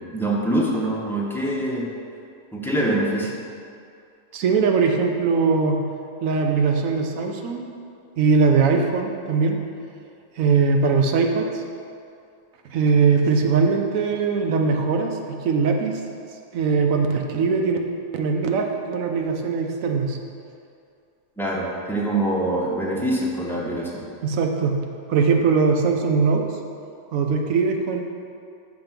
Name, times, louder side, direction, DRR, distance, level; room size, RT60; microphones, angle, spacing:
voice 1, 0.0-1.9 2.5-3.3 21.4-24.0, right 1 dB, ahead, -4 dB, 0.7 m, -24 dB
voice 2, 4.3-5.8 6.2-7.6 8.2-9.6 10.4-11.6 12.6-16.0 16.5-17.8 18.1-20.2 24.2-24.8 25.1-26.4 27.1-28.0, right 5 dB, 90° right, 3 dB, 1.1 m, -21 dB
5.9 x 5.2 x 5.8 m, 2.4 s
omnidirectional pair, 1.4 m